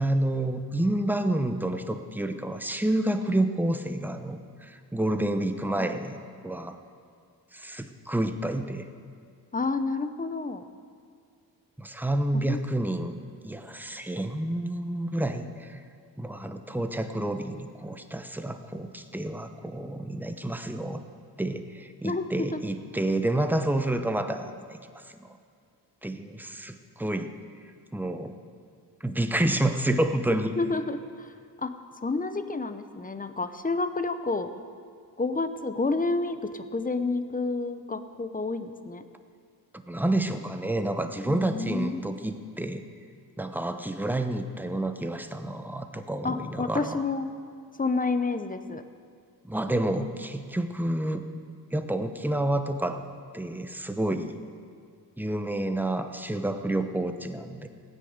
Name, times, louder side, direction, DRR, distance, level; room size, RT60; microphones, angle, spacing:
voice 1, 0.0-6.2 6.4-6.8 7.5-8.9 11.8-15.8 16.2-21.0 21.4-25.3 26.0-27.3 27.9-28.3 29.0-30.5 39.9-42.8 43.4-47.0 49.4-51.2 51.7-53.0 53.3-54.4 55.2-57.7, right 1 dB, 5° right, 8 dB, 0.9 m, -29 dB
voice 2, 9.5-10.6 12.3-12.6 22.0-22.6 30.6-31.3 31.6-31.7 32.0-34.5 35.2-39.0 41.2-42.0 46.2-47.3 47.8-48.8, left 3 dB, 20° left, 10 dB, 0.8 m, -29 dB
16.0 x 9.9 x 8.0 m, 2.3 s
cardioid pair, 100°, 40 cm